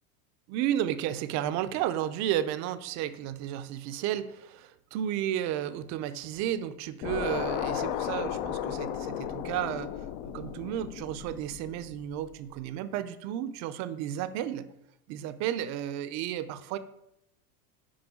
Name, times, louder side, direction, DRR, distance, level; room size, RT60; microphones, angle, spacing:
voice 1, 0.5-10.0 10.2-14.7 15.1-16.8, right 11 dB, 40° right, 12 dB, 0.5 m, -32 dB
sound 1, 7.0-12.3, left 10 dB, 50° left, 0.6 m, -34 dB
6.3 x 4.8 x 5.9 m, 0.82 s
supercardioid pair, 120°, 44 cm